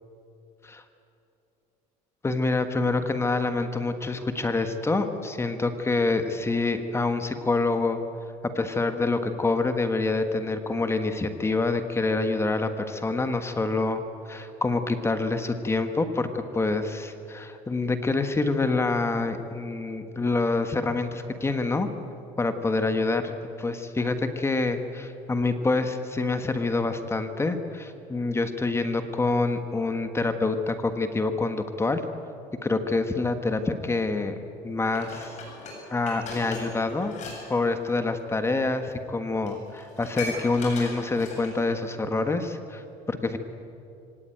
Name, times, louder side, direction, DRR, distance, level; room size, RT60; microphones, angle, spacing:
voice 1, 2.2-8.0 8.5-21.9 22.4-32.0 32.6-34.3 34.6-35.4 35.9-37.1 37.5-43.4, left 3 dB, 15° left, 8 dB, 1.5 m, -26 dB
Dishes pots and pans, 34.9-37.4 37.7-37.9 38.7-38.8 39.2-39.3 39.5-41.7 42.1-42.2, left 3 dB, 50° left, 7.5 m, -38 dB
23.5 x 18.0 x 9.2 m, 2.7 s
cardioid pair, 125°, 15 cm